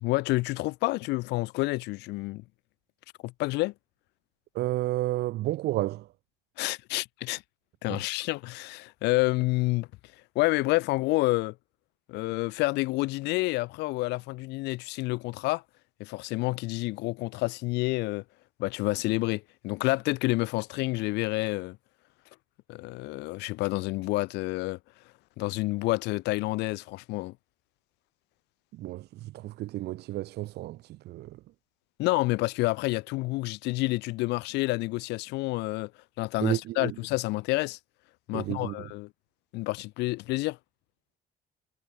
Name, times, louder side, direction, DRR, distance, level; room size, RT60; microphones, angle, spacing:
voice 1, 0.0-2.4 3.2-3.7 6.6-7.4 7.8-9.9 10.3-11.5 12.1-15.6 16.0-18.2 18.6-21.8 22.7-24.8 25.4-27.3 32.0-35.9 36.2-37.8 38.3-39.1 39.5-40.6, left 21 dB, 90° left, 0.8 m, -29 dB
voice 2, 4.5-6.1 28.7-31.4 36.4-36.9 38.3-38.9, right 16 dB, 75° right, 1.5 m, -31 dB
cardioid pair, 110°, 17 cm